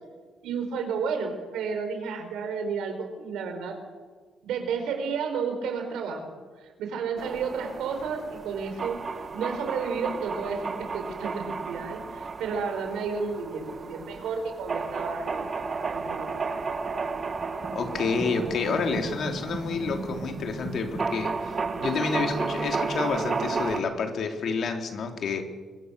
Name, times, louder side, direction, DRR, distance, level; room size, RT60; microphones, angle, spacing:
voice 1, 0.4-3.7 4.4-9.0 9.3-16.7, right 5 dB, 85° right, 5 dB, 4.7 m, -32 dB
sound 1, 7.2-23.8, right 4 dB, 40° right, 2.0 m, -33 dB
voice 2, 17.7-25.4, left 5 dB, 60° left, 4 dB, 3.2 m, -29 dB
24.5 x 22.0 x 6.6 m, 1.5 s
cardioid pair, 90°, 0 cm